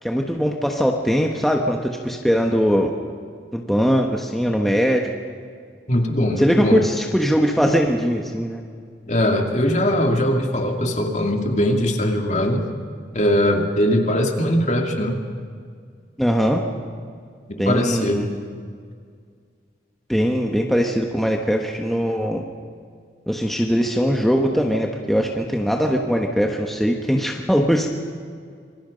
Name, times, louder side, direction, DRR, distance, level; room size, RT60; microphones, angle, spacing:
voice 1, 0.0-2.9 3.5-5.1 6.4-8.6 16.2-16.6 17.6-18.3 20.1-22.4 23.3-27.9, equal, ahead, 1 dB, 1.3 m, -21 dB
voice 2, 5.9-6.8 9.1-12.7 13.1-15.2 17.7-18.3, left 1 dB, 40° left, 3 dB, 2.4 m, -20 dB
26.5 x 23.0 x 5.3 m, 2.1 s
head